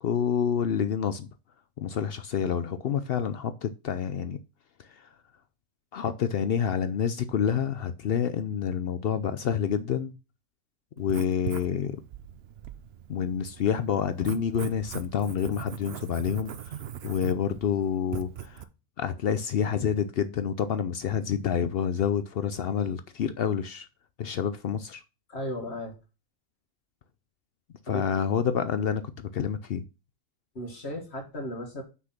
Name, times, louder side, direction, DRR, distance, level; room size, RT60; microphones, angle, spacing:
voice 1, 0.0-1.3 1.8-4.4 4.8-5.1 5.9-10.2 11.0-12.0 13.1-18.6 19.0-23.9 24.2-25.0 27.9-29.8, left 8 dB, 70° left, 0.5 m, -28 dB
Writing, 11.0-18.6, right 10 dB, 60° right, 0.7 m, -41 dB
voice 2, 25.3-25.9 27.9-28.0 30.5-31.8, left 1 dB, 45° left, 2.1 m, -35 dB
6.1 x 5.8 x 5.9 m
omnidirectional pair, 1.6 m